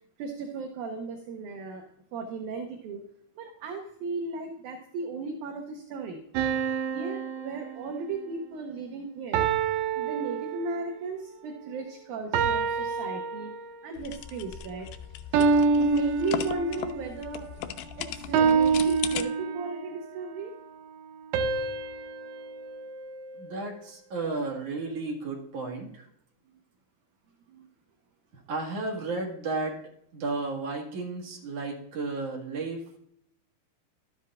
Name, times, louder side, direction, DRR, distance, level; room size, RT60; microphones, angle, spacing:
voice 1, 0.2-3.0 3.4-6.2 6.9-9.4 10.0-13.5 13.8-14.9 15.3-15.5 15.8-17.5 18.0-20.5 27.5-27.7, right 4 dB, 70° right, 3 dB, 2.1 m, -36 dB
sound 1, 6.4-8.3 9.3-11.0 12.3-13.9 15.3-17.0 18.3-20.0 21.3-23.7, right 5 dB, 90° right, 2.4 m, -27 dB
sound 2, 14.0-19.2, left 10 dB, 80° left, 2.1 m, -38 dB
voice 2, 23.4-26.1 28.5-29.8 30.1-32.8, right 3 dB, 50° right, -2 dB, 2.5 m, -33 dB
12.5 x 7.5 x 2.5 m, 0.72 s
omnidirectional pair, 4.0 m